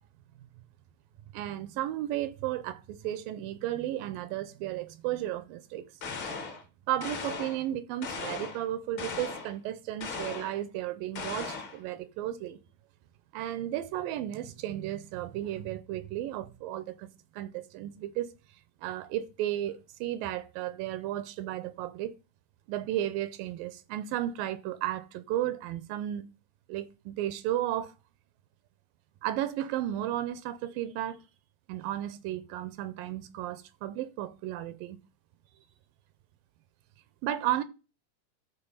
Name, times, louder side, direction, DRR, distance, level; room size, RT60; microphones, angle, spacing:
voice 1, 1.3-5.9 6.9-12.6 13.3-17.1 17.3-18.3 18.8-22.2 22.7-26.3 26.7-27.9 29.2-31.2 31.7-35.0 37.2-37.6, right 13 dB, 90° right, 2.4 m, -34 dB
sound 1, 6.0-6.6 7.0-7.6 8.0-8.6 9.0-9.5 10.0-10.6 11.2-11.8, left 4 dB, 45° left, 1.8 m, -37 dB
12.5 x 4.5 x 5.6 m
omnidirectional pair, 4.0 m